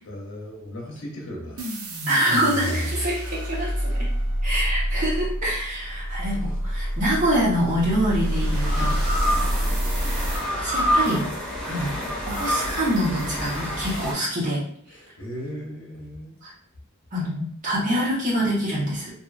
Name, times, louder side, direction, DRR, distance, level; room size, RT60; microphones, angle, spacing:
voice 1, 0.0-1.8 6.3-6.5 9.3-9.6 14.9-16.4, equal, 60° left, -1 dB, 0.8 m, -37 dB
sound 1, 1.6-10.5, equal, 70° right, 0.5 m, -27 dB
voice 2, 2.1-4.1 4.4-9.1 10.6-11.2 11.6-14.6 16.4-16.5 17.1-19.1, equal, 35° right, -6 dB, 1.0 m, -25 dB
sound 2, 3.2-4.7 6.6-14.1, equal, 5° left, 0.8 m, -29 dB
2.6 x 2.4 x 2.4 m, 0.65 s
head